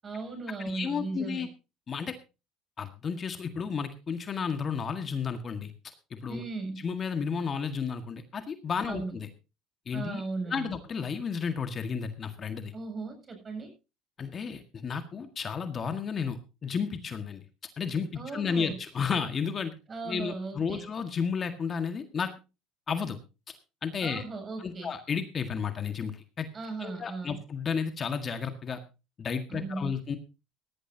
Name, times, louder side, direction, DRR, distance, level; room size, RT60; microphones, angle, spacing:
voice 1, 0.0-1.5 6.3-6.8 8.9-9.2 9.9-10.7 12.7-13.7 18.1-18.8 19.9-20.9 24.0-24.9 26.5-27.4 29.5-30.0, right 3 dB, 30° right, 6 dB, 8.0 m, -37 dB
voice 2, 0.6-1.5 1.9-2.1 2.8-5.7 6.1-6.4 6.8-9.3 9.9-12.7 14.2-17.4 17.8-19.7 20.1-22.3 22.9-23.2 23.8-24.2 24.6-26.5 26.8-28.8 29.2-30.2, left 6 dB, 35° left, 8 dB, 1.8 m, -32 dB
17.5 x 13.0 x 2.8 m, 0.30 s
supercardioid pair, 90°, 0 cm